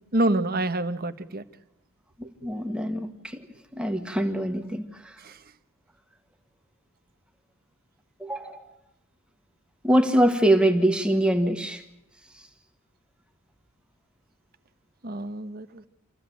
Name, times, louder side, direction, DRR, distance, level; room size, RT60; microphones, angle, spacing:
voice 1, 0.1-1.4 5.2-5.4 15.0-15.8, right 1 dB, 45° right, 10 dB, 1.2 m, -27 dB
voice 2, 2.4-3.1 3.7-4.8 8.2-8.6 9.8-11.8, right 1 dB, 5° right, 5 dB, 1.7 m, -23 dB
27.5 x 15.0 x 9.4 m, 0.91 s
head